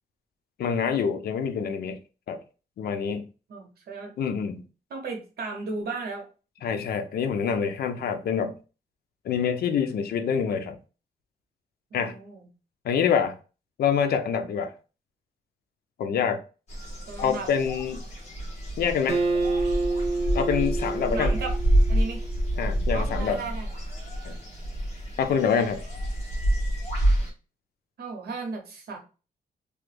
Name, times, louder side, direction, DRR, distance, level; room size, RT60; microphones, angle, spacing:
voice 1, 0.6-2.0 2.3-2.4 2.8-3.2 4.2-4.6 6.6-8.6 9.2-10.8 11.9-12.1 12.8-13.3 13.8-14.7 16.0-16.4 17.2-18.0 18.8-19.2 20.3-21.3 22.6-23.4 24.2-24.4 25.2-25.8, left 7 dB, 85° left, 0.5 m, -26 dB
voice 2, 3.5-4.1 4.9-6.2 6.6-6.7 9.8-10.0 11.9-12.5 17.1-17.5 21.1-21.5 21.9-22.2 22.9-23.7 28.0-29.0, right 3 dB, 85° right, 0.9 m, -35 dB
sound 1, 16.7-27.3, right 1 dB, 45° left, 1.2 m, -28 dB
Acoustic guitar, 19.1-22.5, right 3 dB, 45° right, 0.5 m, -28 dB
3.0 x 2.2 x 3.3 m
wide cardioid pair, 150°, 16 cm